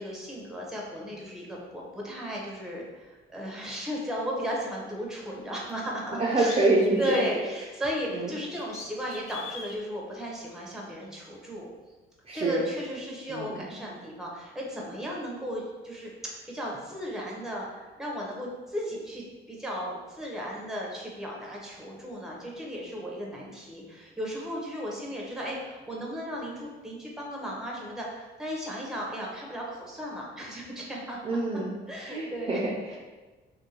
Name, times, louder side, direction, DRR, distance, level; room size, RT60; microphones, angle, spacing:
voice 1, 0.0-6.6 7.0-11.7 12.3-31.2 31.9-32.6 32.9-33.0, equal, 5° right, -3 dB, 0.7 m, -35 dB
sound 1, 5.7-5.8 6.5-7.4 8.6-9.8, left 6 dB, 80° left, 0.4 m, -41 dB
voice 2, 6.2-7.2 8.1-8.3 12.3-12.6 13.3-13.6 31.2-31.7 32.1-33.0, right 2 dB, 30° right, -4 dB, 0.5 m, -26 dB
2.7 x 2.6 x 2.8 m, 1.3 s
cardioid pair, 90°, 20 cm